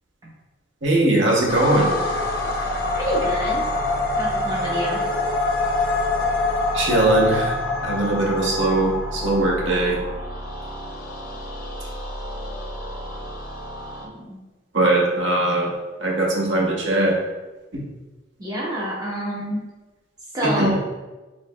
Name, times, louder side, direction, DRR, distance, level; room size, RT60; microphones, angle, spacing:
voice 1, 0.8-1.9 6.7-7.5 7.8-10.0 14.7-15.7 16.0-17.2 20.4-20.7, right 2 dB, 65° right, -2 dB, 0.9 m, -20 dB
sound 1, 1.5-14.1, left 2 dB, 45° left, 0.5 m, -26 dB
voice 2, 2.9-3.8 4.2-5.0 14.0-14.4 18.4-19.6 20.3-20.7, equal, 20° right, -5 dB, 0.8 m, -27 dB
4.6 x 3.1 x 2.2 m, 1.2 s
head